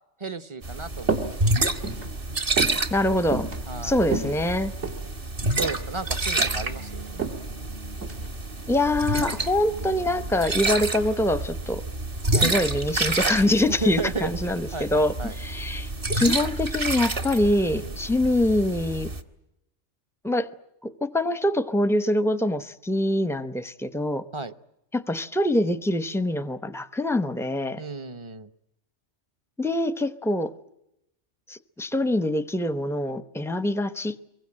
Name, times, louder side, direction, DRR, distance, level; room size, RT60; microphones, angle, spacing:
voice 1, 0.2-1.3 3.7-4.0 5.6-7.2 12.3-12.6 13.7-14.3 14.7-15.3 17.7-18.0 24.3-24.5 27.8-28.5, right 4 dB, 25° right, 0.9 m, -34 dB
sound 1, 0.6-19.2, right 2 dB, 50° right, 1.9 m, -29 dB
sound 2, 1.0-1.4 1.7-2.1 2.6-2.8 3.3-3.6 4.0-5.1 5.6-5.8 6.2-6.6 7.2-7.4 8.0-8.3, right 4 dB, 70° right, 3.1 m, -29 dB
voice 2, 2.9-3.5 3.8-4.7 8.7-11.8 12.3-19.1 20.2-20.5 20.8-24.2 24.9-27.8 29.6-30.5 31.5-34.1, left 1 dB, 5° left, 0.7 m, -24 dB
24.5 x 23.0 x 8.7 m
omnidirectional pair, 1.2 m